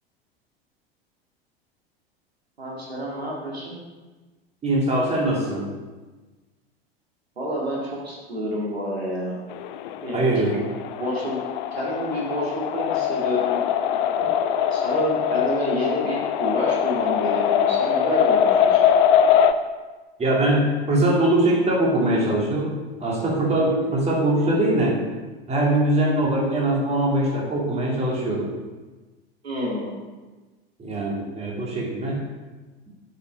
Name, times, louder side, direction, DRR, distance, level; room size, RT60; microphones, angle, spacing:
voice 1, 2.6-3.7 7.4-9.4 10.0-10.3 11.0-11.4 11.7-14.1 14.7-18.8 29.4-29.9, equal, 80° right, -4 dB, 2.0 m, -28 dB
voice 2, 4.6-5.7 10.1-10.6 14.2-14.3 20.2-25.0 25.5-28.5 30.8-32.2, right 1 dB, 20° right, -3 dB, 2.4 m, -22 dB
sound 1, 9.5-19.5, left 9 dB, 50° left, 0.6 m, -22 dB
8.0 x 5.7 x 5.1 m, 1.3 s
figure-of-eight pair, 80°, 31 cm